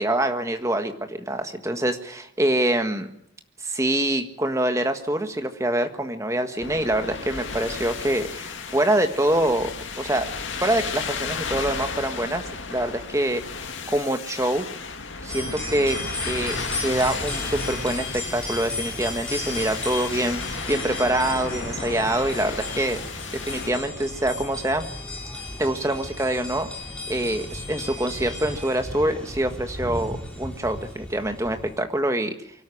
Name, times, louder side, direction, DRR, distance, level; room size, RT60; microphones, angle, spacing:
voice 1, 0.0-3.1 3.6-9.7 10.0-10.3 10.6-12.4 12.7-13.4 13.9-14.7 15.2-16.0 16.3-23.0 23.3-24.8 25.6-26.7 27.1-32.3, right 1 dB, 15° right, 7 dB, 1.6 m, -25 dB
sound 1, 6.6-23.7, left 5 dB, 75° left, 2.1 m, -34 dB
sound 2, 15.3-31.8, left 1 dB, 5° left, 3.5 m, -34 dB
24.0 x 13.0 x 10.0 m, 0.74 s
head